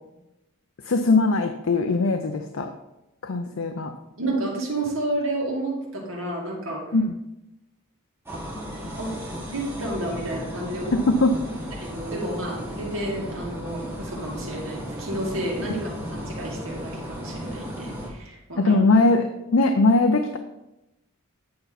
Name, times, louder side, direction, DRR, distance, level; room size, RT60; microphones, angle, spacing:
voice 1, 0.8-2.7 3.2-3.9 6.9-7.2 10.9-11.4 18.6-20.4, left 3 dB, 70° left, 6 dB, 0.6 m, -20 dB
voice 2, 4.2-6.9 9.0-9.1 9.5-11.0 11.8-15.8 16.1-18.7, right 1 dB, 65° right, -3 dB, 2.4 m, -30 dB
sound 1, 8.3-18.1, equal, 10° right, 1.5 m, -35 dB
9.4 x 5.8 x 4.1 m, 0.93 s
head